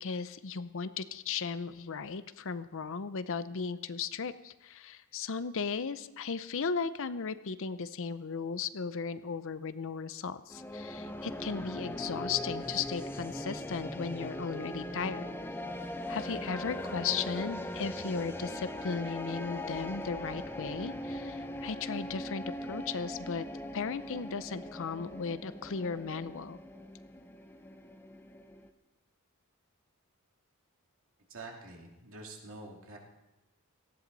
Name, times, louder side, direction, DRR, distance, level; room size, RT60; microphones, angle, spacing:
voice 1, 0.0-15.3 16.1-23.5 23.7-26.6, left 5 dB, 60° left, 13 dB, 0.6 m, -36 dB
sound 1, 10.5-28.7, left 1 dB, 10° left, 0.7 m, -40 dB
voice 2, 31.3-33.0, right 2 dB, 60° right, 0 dB, 2.6 m, -46 dB
18.5 x 14.0 x 4.0 m, 0.97 s
head